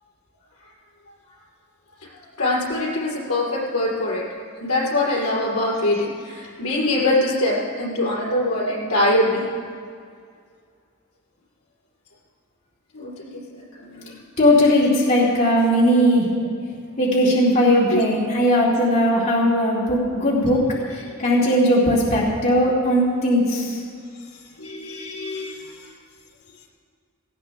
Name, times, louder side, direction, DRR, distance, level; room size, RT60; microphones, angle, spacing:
voice 1, 2.4-4.2 4.6-9.4 12.9-14.2 17.9-18.0 21.1-21.2 24.6-25.7, left 1 dB, 80° left, -4 dB, 4.2 m, -23 dB
voice 2, 14.4-16.3 17.0-20.7 21.2-23.8, equal, 30° left, -7 dB, 2.5 m, -18 dB
18.0 x 16.0 x 3.5 m, 2.2 s
head